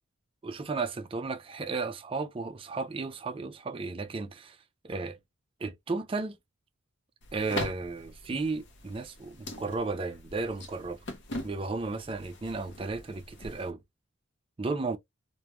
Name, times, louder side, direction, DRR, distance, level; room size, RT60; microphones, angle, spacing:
voice 1, 0.4-4.6 4.8-5.2 5.6-6.4 7.3-11.0 11.4-13.8 14.6-15.0, right 3 dB, 25° right, 0.4 m, -34 dB
sound 1, 7.2-13.7, left 2 dB, 55° left, 0.6 m, -42 dB
2.9 x 2.1 x 2.2 m
head